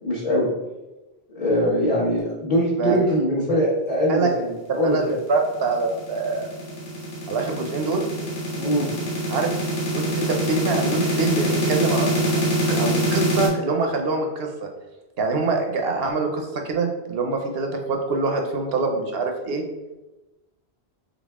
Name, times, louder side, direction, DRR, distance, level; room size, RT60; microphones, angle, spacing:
voice 1, 0.0-0.5 1.3-5.1 8.6-8.9, equal, 35° left, -9 dB, 1.1 m, -22 dB
voice 2, 5.3-6.5 7.3-8.1 9.3-9.5 9.9-14.7 15.2-19.6, right 3 dB, 65° right, 3 dB, 0.8 m, -25 dB
sound 1, 5.4-13.5, right 1 dB, 85° left, 1.3 m, -25 dB
4.0 x 3.4 x 3.5 m, 1.1 s
omnidirectional pair, 1.1 m